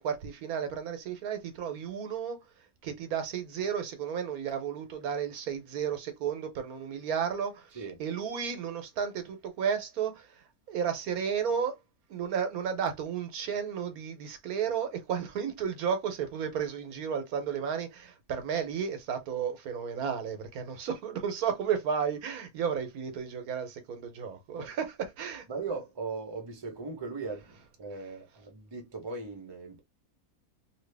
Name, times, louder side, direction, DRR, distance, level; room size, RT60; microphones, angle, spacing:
voice 1, 0.0-11.8 12.1-25.5, right 7 dB, 75° right, 1.2 m, -33 dB
voice 2, 25.5-29.8, right 4 dB, 25° right, 0.7 m, -38 dB
2.8 x 2.8 x 3.3 m
omnidirectional pair, 1.6 m